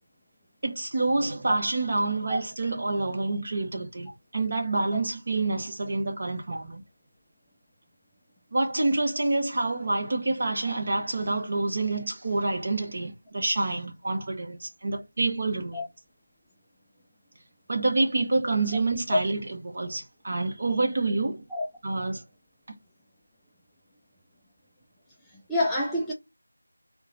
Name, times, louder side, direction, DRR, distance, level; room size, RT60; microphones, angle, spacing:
voice 1, 0.6-6.8 8.5-15.8 17.7-21.4 21.8-22.2, right 2 dB, 40° right, 0.9 m, -27 dB
voice 2, 25.5-26.1, left 1 dB, ahead, 0.3 m, -26 dB
2.9 x 2.2 x 3.8 m
figure-of-eight pair, 175°, 0 cm